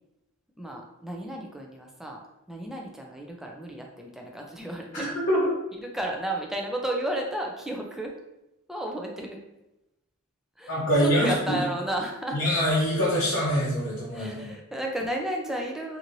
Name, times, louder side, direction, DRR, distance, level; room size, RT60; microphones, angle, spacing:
voice 1, 0.6-2.2 2.5-5.1 5.7-8.1 8.7-9.4 10.6-12.4 14.1-16.0, right 1 dB, ahead, 0 dB, 0.3 m, -33 dB
voice 2, 4.9-5.4 10.7-11.6 12.3-14.5, equal, 55° left, -7 dB, 0.7 m, -24 dB
2.9 x 2.7 x 2.6 m, 0.93 s
head